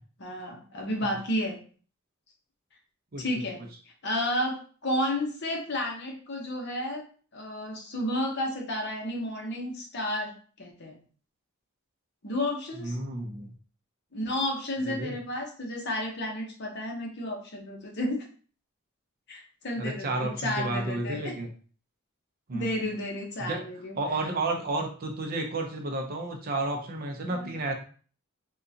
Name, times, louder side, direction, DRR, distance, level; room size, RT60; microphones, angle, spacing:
voice 1, 0.2-1.6 3.2-3.6 4.0-7.0 7.3-11.0 12.2-13.0 14.1-18.2 19.3-21.3 22.5-24.0 27.3-27.5, left 1 dB, 55° left, 1 dB, 0.8 m, -32 dB
voice 2, 12.8-13.5 14.9-15.1 19.8-21.5 22.5-22.7 23.4-23.6 24.0-27.7, right 2 dB, 45° right, 3 dB, 0.6 m, -31 dB
3.6 x 2.3 x 2.7 m, 0.41 s
head